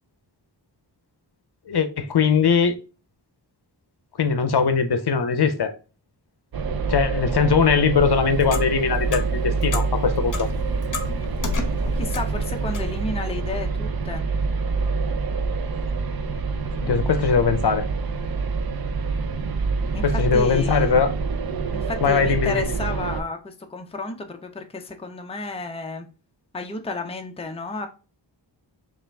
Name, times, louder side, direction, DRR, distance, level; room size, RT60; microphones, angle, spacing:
voice 1, 1.7-2.8 4.2-5.7 6.9-10.5 16.8-17.8 20.0-21.1 22.0-22.7, left 6 dB, 60° left, 9 dB, 0.7 m, -20 dB
sound 1, 6.5-23.2, right 4 dB, 55° right, 0.6 m, -26 dB
Clock, 8.0-13.0, left 2 dB, 45° left, 0.9 m, -32 dB
voice 2, 11.9-14.2 19.9-21.1 21.7-26.1 26.5-27.9, left 3 dB, 15° left, 4 dB, 0.5 m, -32 dB
5.5 x 2.5 x 3.4 m, 0.34 s
wide cardioid pair, 120°, 44 cm